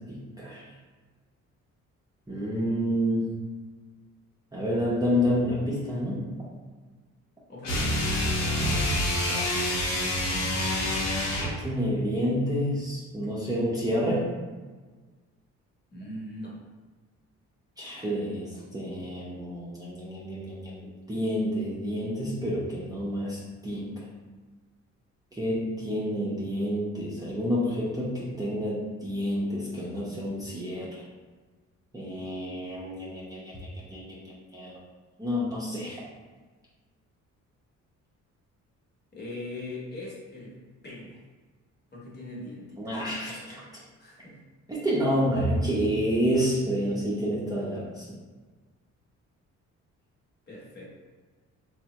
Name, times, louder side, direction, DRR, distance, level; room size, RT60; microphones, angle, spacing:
voice 1, 0.1-0.6 2.3-3.3 4.5-6.2 9.2-9.7 11.4-14.3 17.8-20.8 21.1-23.9 25.4-31.0 31.9-33.4 33.9-34.2 34.5-34.8 35.2-36.0 42.8-43.6 44.7-48.1, equal, 10° right, -7 dB, 0.6 m, -29 dB
voice 2, 7.5-8.0 15.9-16.5 39.1-40.5 40.8-41.2 41.9-43.0 44.0-44.4 50.5-51.0, left 1 dB, 35° left, -4 dB, 1.0 m, -40 dB
sound 1, 7.6-11.6, left 1 dB, 65° left, 0.8 m, -27 dB
3.3 x 2.1 x 2.8 m, 1.4 s
cardioid pair, 90°, 30 cm